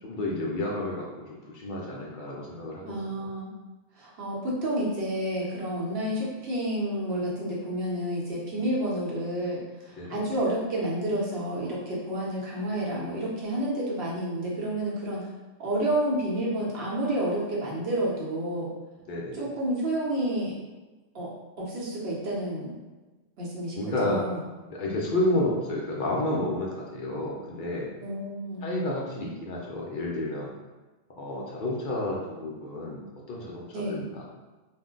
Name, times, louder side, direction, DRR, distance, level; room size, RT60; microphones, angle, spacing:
voice 1, 0.0-2.8 10.0-10.3 19.1-19.5 23.8-24.2 24.7-27.9 28.6-30.5 31.2-34.2, left 1 dB, 60° left, -3 dB, 0.5 m, -30 dB
voice 2, 2.8-3.5 4.0-15.2 15.6-18.7 19.3-20.5 21.1-22.7 23.4-24.4 28.0-28.7 33.7-34.0, right 1 dB, 60° right, -5 dB, 1.0 m, -30 dB
2.5 x 2.1 x 3.6 m, 1.2 s
omnidirectional pair, 1.3 m